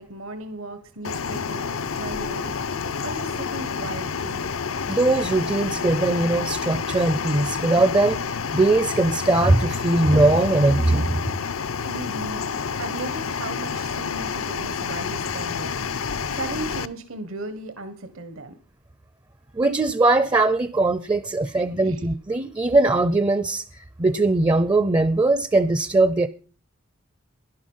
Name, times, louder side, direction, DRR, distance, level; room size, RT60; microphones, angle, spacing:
voice 1, 0.0-2.6 3.0-4.5 11.8-15.9 16.3-18.5 21.7-22.1, right 2 dB, 75° right, 1.3 m, -36 dB
sound 1, 1.0-16.9, left 6 dB, 75° left, 0.6 m, -29 dB
voice 2, 4.9-11.4 19.5-26.3, right 2 dB, 20° right, 0.5 m, -20 dB
11.5 x 11.0 x 5.5 m
head